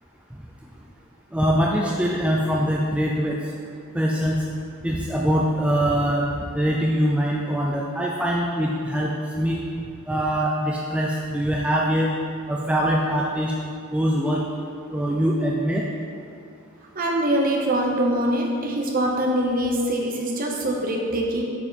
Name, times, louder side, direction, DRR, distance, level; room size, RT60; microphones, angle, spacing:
voice 1, 1.3-3.4 3.9-4.4 4.8-6.3 6.5-9.6 10.1-12.1 12.5-13.5 13.9-14.4 14.9-15.8, equal, 5° right, -3 dB, 0.4 m, -23 dB
voice 2, 16.9-21.4, right 1 dB, 40° right, 0 dB, 1.0 m, -23 dB
8.8 x 5.5 x 4.1 m, 2.4 s
head